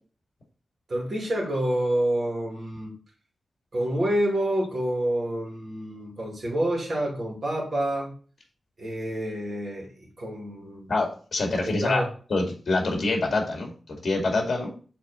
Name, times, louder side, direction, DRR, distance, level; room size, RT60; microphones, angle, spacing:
voice 1, 0.9-2.9 3.7-8.1 8.8-10.9 11.6-12.1, right 1 dB, 45° right, 2.6 m, -28 dB
voice 2, 10.9-12.0 12.3-14.8, left 2 dB, 50° left, 2.1 m, -26 dB
7.1 x 4.0 x 4.2 m
wide cardioid pair, 145°, 0 cm